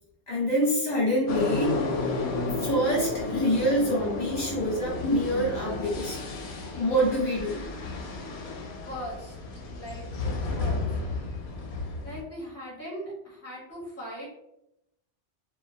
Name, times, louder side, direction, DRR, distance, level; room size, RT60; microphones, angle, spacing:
voice 1, 0.3-1.8 2.6-6.2 6.8-7.6, equal, 40° left, -5 dB, 0.9 m, -26 dB
sound 1, 1.3-12.2, left 3 dB, 70° left, 0.8 m, -32 dB
voice 2, 8.9-9.3 9.7-10.1 10.5-11.0 12.0-14.3, equal, 15° left, -7 dB, 0.9 m, -39 dB
2.2 x 2.1 x 2.6 m, 0.84 s
omnidirectional pair, 1.2 m